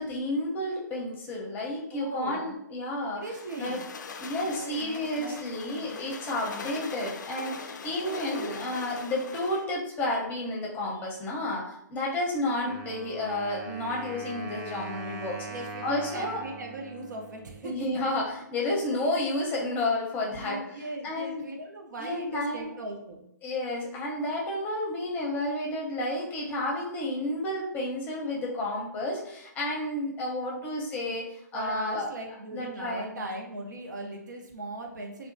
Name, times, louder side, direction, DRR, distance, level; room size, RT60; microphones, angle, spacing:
voice 1, 0.0-3.2 3.6-3.8 4.2-15.5 15.8-16.4 17.6-20.6 21.0-21.4 22.0-22.7 23.4-32.1 32.5-33.2, left 1 dB, 20° left, -2 dB, 0.7 m, -31 dB
voice 2, 1.9-2.6 3.1-3.8 4.4-6.0 8.0-8.7 15.5-17.9 18.6-18.7 20.3-23.3 31.5-35.3, right 2 dB, 75° right, 1 dB, 0.7 m, -39 dB
sound 1, 3.2-9.7, left 5 dB, 75° left, 0.4 m, -42 dB
Wind instrument woodwind instrument, 12.6-18.3, right 2 dB, 30° right, 0.5 m, -41 dB
2.7 x 2.2 x 2.6 m, 0.76 s
hypercardioid pair, 135°, 10 cm